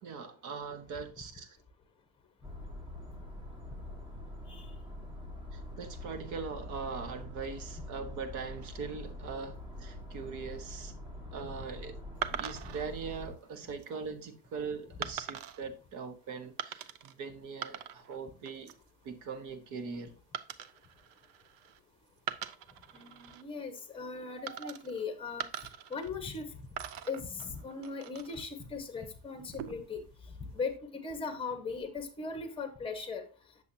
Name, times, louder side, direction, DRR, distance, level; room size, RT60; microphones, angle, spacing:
voice 1, 0.0-1.6 5.5-10.9 11.3-12.0 12.3-18.7 19.0-20.1 24.5-24.7, right 5 dB, 55° right, 1.3 m, -41 dB
sound 1, 2.4-13.3, left 1 dB, 10° right, 1.8 m, -45 dB
sound 2, 12.2-12.8 13.5-13.9 15.0-15.6 16.6-17.1 17.4-18.2 18.5-18.9 20.3-21.8 22.2-23.4 24.5-25.0 25.4-26.4 26.8-28.4 29.4-30.0, right 10 dB, 70° right, 0.7 m, -41 dB
voice 2, 22.9-26.5 27.1-30.0 30.4-33.2, left 4 dB, 15° left, 1.4 m, -39 dB
8.3 x 6.9 x 2.8 m
cardioid pair, 145°, 36 cm